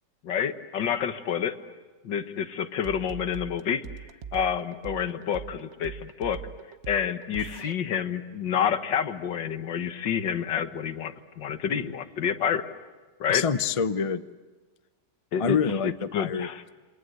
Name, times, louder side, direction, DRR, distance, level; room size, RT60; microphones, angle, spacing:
voice 1, 0.2-1.6 2.0-3.8 4.3-6.4 6.9-12.7 13.2-13.4 15.3-15.6 15.8-16.6, left 8 dB, 80° left, 10 dB, 2.0 m, -28 dB
sound 1, 2.8-7.7, right 7 dB, 45° right, 1.1 m, -41 dB
voice 2, 13.3-14.2 15.4-16.5, left 6 dB, 40° left, 12 dB, 0.5 m, -26 dB
28.0 x 26.0 x 8.1 m, 1.3 s
omnidirectional pair, 1.9 m